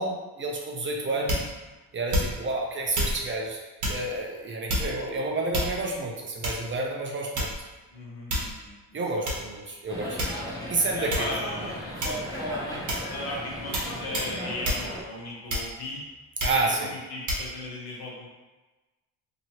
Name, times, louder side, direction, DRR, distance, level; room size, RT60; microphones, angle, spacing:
voice 1, 0.0-1.4 1.9-3.6 3.9-7.5 8.9-10.2 10.7-11.3 16.4-16.9, right 2 dB, 30° right, -1 dB, 0.5 m, -29 dB
voice 2, 1.1-1.5 7.9-9.2 11.0-16.0 16.5-18.3, left 1 dB, 80° left, -3 dB, 1.0 m, -37 dB
sound 1, 1.3-1.6 2.1-2.5 2.9-3.2 3.8-4.0 4.7-5.1 5.5-6.0 6.4-6.7 7.4-7.7 8.3-8.6 9.3-9.4 10.2-10.6 11.1-11.4 12.0-12.3 12.9-13.1 13.7-13.9 14.1-14.3 14.6-14.8 15.5-15.9 16.4-16.6 17.3-17.4, equal, 50° right, 1.0 m, -28 dB
sound 2, 9.9-15.0, left 1 dB, 10° left, 0.7 m, -36 dB
2.9 x 2.8 x 2.9 m, 1.2 s
cardioid pair, 115°, 38 cm